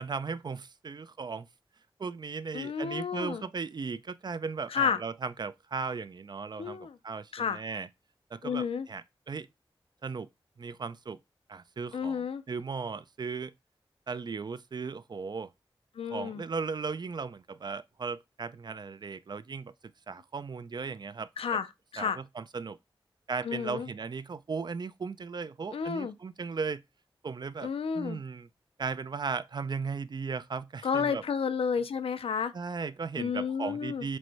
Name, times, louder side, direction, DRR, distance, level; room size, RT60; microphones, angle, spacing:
voice 1, 0.0-1.5 2.0-7.9 8.3-9.5 10.0-10.3 10.6-11.2 11.5-12.2 12.5-13.5 14.1-15.5 16.1-19.7 20.1-21.3 22.0-22.8 23.3-26.8 27.2-27.7 27.9-28.5 28.8-31.2 32.5-34.2, right 5 dB, 50° right, 0.4 m, -36 dB
voice 2, 2.5-3.4 4.7-5.0 6.6-7.0 7.3-7.6 8.4-8.9 11.9-12.4 16.0-16.4 21.4-21.7 21.9-22.2 23.4-23.9 25.7-26.1 27.6-28.2 30.8-32.5 33.2-34.1, left 6 dB, 90° left, 0.4 m, -31 dB
4.6 x 2.1 x 4.0 m
wide cardioid pair, 60°, 9 cm